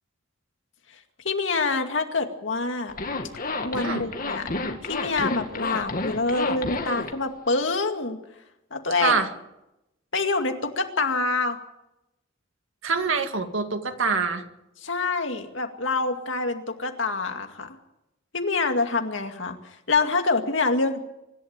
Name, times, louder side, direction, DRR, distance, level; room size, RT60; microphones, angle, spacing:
voice 1, 1.2-2.9 3.6-4.5 4.9-8.2 8.7-9.2 10.1-11.6 14.8-17.8 18.3-19.6 19.9-21.0, left 3 dB, 70° left, 5 dB, 2.2 m, -26 dB
Zipper (clothing), 2.9-7.1, left 3 dB, 45° left, 2.0 m, -30 dB
voice 2, 3.8-4.1 9.0-9.3 12.8-14.4, right 4 dB, 80° right, 7 dB, 2.0 m, -25 dB
25.0 x 12.0 x 9.0 m, 0.92 s
head